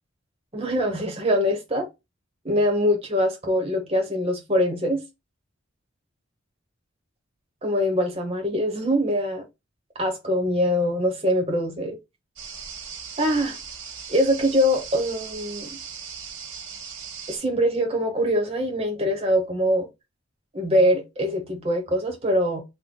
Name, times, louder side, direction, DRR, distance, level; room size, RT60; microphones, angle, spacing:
voice 1, 0.5-1.9 2.4-5.0 7.6-9.4 10.0-12.0 13.2-13.6 14.1-15.7 17.3-19.9 20.5-22.6, equal, 30° right, 0.8 m, -23 dB
sound 1, 12.4-17.4, right 6 dB, 70° right, 1.2 m, -38 dB
3.7 x 2.1 x 3.6 m
head